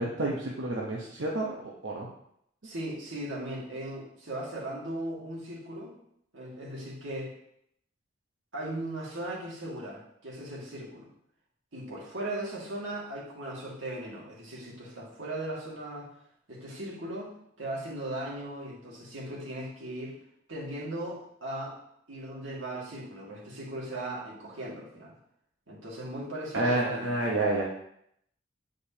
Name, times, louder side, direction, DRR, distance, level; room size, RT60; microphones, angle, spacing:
voice 1, 0.0-2.1 26.5-27.6, right 2 dB, 70° right, -4 dB, 1.0 m, -29 dB
voice 2, 2.6-5.9 6.3-7.3 8.5-11.1 11.7-16.1 16.5-17.3 17.6-20.2 20.5-21.8 22.1-25.2 25.7-27.5, right 1 dB, 85° right, -5 dB, 2.1 m, -38 dB
8.5 x 5.1 x 2.8 m, 0.73 s
head